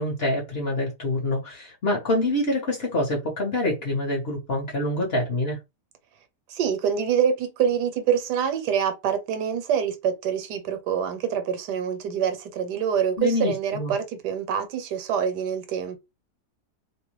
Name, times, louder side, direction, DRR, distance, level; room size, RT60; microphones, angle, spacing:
voice 1, 0.0-5.6 13.2-13.9, left 1 dB, 50° left, 0.8 m, -26 dB
voice 2, 6.5-16.0, right 8 dB, 80° right, 1.2 m, -25 dB
2.8 x 2.1 x 2.9 m
omnidirectional pair, 1.8 m